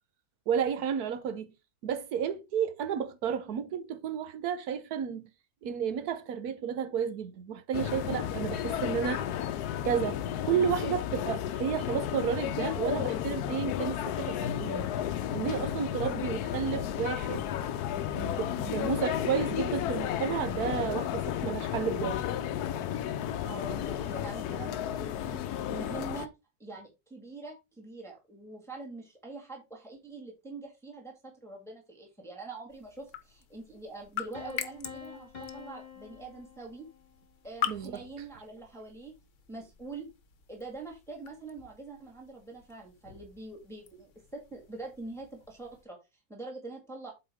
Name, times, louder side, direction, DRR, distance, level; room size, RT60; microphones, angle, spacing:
voice 1, 0.5-1.5 1.8-5.3 5.6-9.2 9.8-14.9 15.3-17.5 18.1-22.2 37.7-38.0, right 8 dB, 75° right, 1.4 m, -32 dB
sound 1, 7.7-26.3, left 10 dB, 90° left, 1.2 m, -33 dB
voice 2, 23.4-26.3 26.6-36.9 37.4-39.1 39.5-40.1 40.5-46.0 46.3-47.1, right 3 dB, ahead, 1.9 m, -44 dB
sound 2, 32.7-45.8, left 9 dB, 55° left, 1.2 m, -44 dB
Piano, 34.3-37.2, left 7 dB, 30° left, 1.5 m, -47 dB
8.1 x 4.7 x 3.6 m
omnidirectional pair, 1.6 m